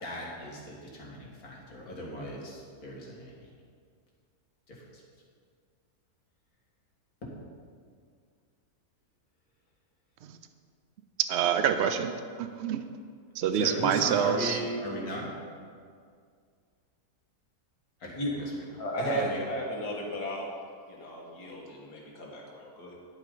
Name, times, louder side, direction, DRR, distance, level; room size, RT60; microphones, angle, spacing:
voice 1, 0.0-3.5 4.7-5.0 7.2-7.3 13.5-15.3 18.0-18.5 19.0-19.4, equal, 65° left, -3 dB, 2.1 m, -36 dB
voice 2, 11.3-12.1 12.4-12.8 13.4-14.6, right 8 dB, 80° right, 9 dB, 0.6 m, -26 dB
voice 3, 18.8-20.5 20.9-22.9, equal, 90° left, -2 dB, 2.1 m, -35 dB
10.5 x 8.2 x 3.8 m, 2.2 s
omnidirectional pair, 1.7 m